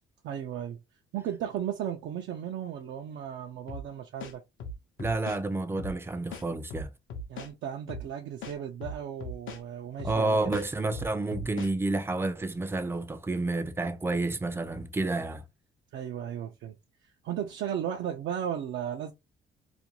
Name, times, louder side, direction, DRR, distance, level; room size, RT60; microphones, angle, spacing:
voice 1, 0.2-0.8 1.1-4.4 7.3-10.6 15.9-16.8 17.0-19.1, right 9 dB, 75° right, 0.4 m, -35 dB
sound 1, 3.7-3.9 4.2-5.4 5.8-6.0 6.3-7.5 7.9-8.1 8.4-9.6 10.0-10.2 10.5-11.7, left 2 dB, 75° left, 0.7 m, -39 dB
voice 2, 5.0-6.9 10.0-15.4, right 2 dB, 10° right, 0.4 m, -30 dB
2.5 x 2.2 x 2.8 m
cardioid pair, 90°, 20 cm